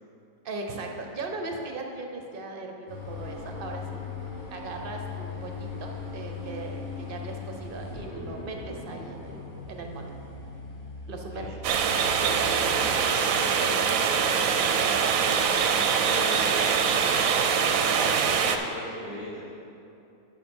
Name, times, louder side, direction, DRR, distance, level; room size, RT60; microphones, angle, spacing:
voice 1, 0.4-4.0 4.5-10.4 11.1-11.6 12.2-12.9, right 3 dB, 45° right, 3 dB, 0.8 m, -38 dB
sound 1, 2.9-12.7, left 4 dB, 55° left, 2.0 m, -39 dB
voice 2, 11.0-11.5 12.1-15.6 16.0-19.4, left 1 dB, 90° left, -13 dB, 3.0 m, -40 dB
sound 2, 11.6-18.6, right 6 dB, 70° right, 0.9 m, -24 dB
9.8 x 6.2 x 4.4 m, 2.7 s
omnidirectional pair, 1.6 m